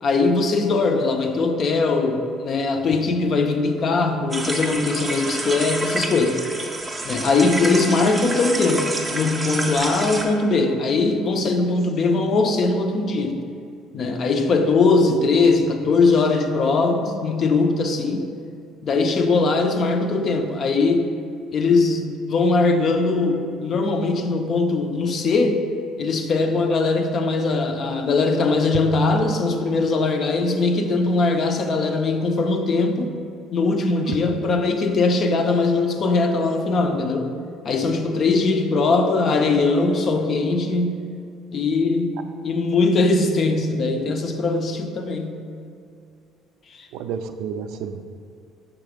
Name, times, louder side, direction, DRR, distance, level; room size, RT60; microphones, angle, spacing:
voice 1, 0.0-6.4 7.0-13.4 13.9-18.3 18.8-21.1 21.5-25.6 26.0-33.1 33.5-37.3 37.6-41.0 41.5-45.4 46.7-46.9, left 3 dB, 40° left, 6 dB, 0.5 m, -20 dB
sound 1, 4.3-10.3, right 2 dB, 15° right, 0.5 m, -28 dB
voice 2, 46.9-48.0, right 7 dB, 75° right, 8 dB, 0.3 m, -30 dB
6.0 x 3.6 x 5.0 m, 2.4 s
cardioid pair, 140°, 0 cm